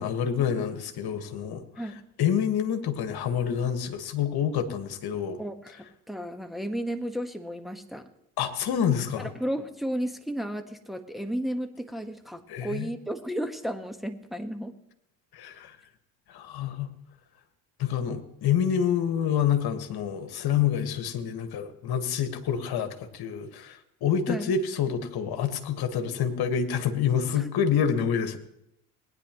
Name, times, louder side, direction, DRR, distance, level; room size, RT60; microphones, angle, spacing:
voice 1, 0.0-1.6 2.2-5.4 8.4-9.3 12.5-12.9 15.3-15.7 16.3-16.9 17.8-28.4, left 8 dB, 55° left, 8 dB, 1.7 m, -27 dB
voice 2, 5.4-8.1 9.2-14.8 24.3-24.5 27.3-27.5, equal, ahead, 5 dB, 1.4 m, -33 dB
20.0 x 10.0 x 3.1 m, 0.82 s
hypercardioid pair, 60°, 44 cm